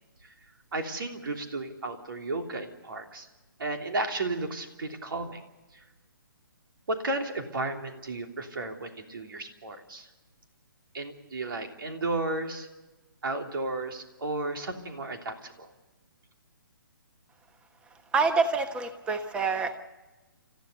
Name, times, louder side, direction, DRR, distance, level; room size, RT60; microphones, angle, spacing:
voice 1, 0.7-3.3 3.6-5.4 5.7-5.8 6.9-10.1 10.9-12.7 13.2-15.7, right 2 dB, 75° right, 4 dB, 3.2 m, -33 dB
voice 2, 18.1-19.8, right 4 dB, 10° right, 8 dB, 1.2 m, -26 dB
29.0 x 15.0 x 6.8 m, 1.1 s
hypercardioid pair, 155°, 12 cm